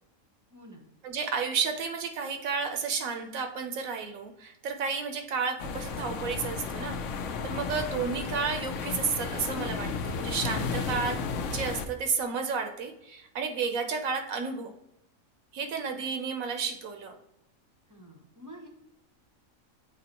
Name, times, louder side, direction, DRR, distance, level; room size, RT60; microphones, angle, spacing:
voice 1, 0.5-0.9 17.9-18.7, equal, 20° right, 1 dB, 0.6 m, -48 dB
voice 2, 1.0-11.2 11.5-14.7 15.5-17.1, right 5 dB, 75° right, 6 dB, 1.1 m, -32 dB
sound 1, 5.6-11.9, left 5 dB, 65° left, 0.9 m, -33 dB
8.3 x 3.9 x 2.9 m, 0.85 s
omnidirectional pair, 1.5 m